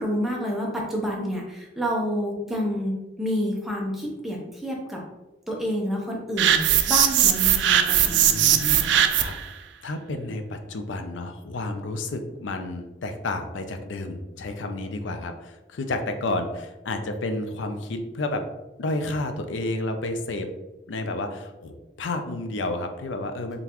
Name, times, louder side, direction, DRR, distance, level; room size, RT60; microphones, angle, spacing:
voice 1, 0.0-5.0 5.5-6.6 6.9-9.1, equal, ahead, -3 dB, 0.7 m, -29 dB
sound 1, 6.4-9.4, right 10 dB, 75° right, 0.4 m, -20 dB
voice 2, 8.1-8.9 9.2-9.3 9.8-18.4 18.8-20.5 20.9-21.7 22.0-23.6, left 2 dB, 90° left, 6 dB, 0.5 m, -31 dB
3.8 x 3.7 x 2.9 m, 1.0 s
head